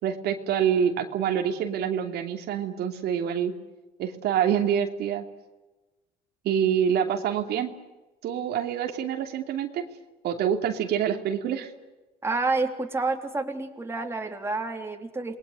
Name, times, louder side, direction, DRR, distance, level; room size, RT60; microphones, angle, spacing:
voice 1, 0.0-3.5 4.0-5.2 6.4-7.7 8.2-9.8 10.2-11.7, right 8 dB, 75° right, 4 dB, 2.9 m, -26 dB
voice 2, 12.2-15.4, right 3 dB, 15° right, 3 dB, 3.4 m, -29 dB
28.5 x 21.0 x 8.3 m, 1.1 s
cardioid pair, 110°, 17 cm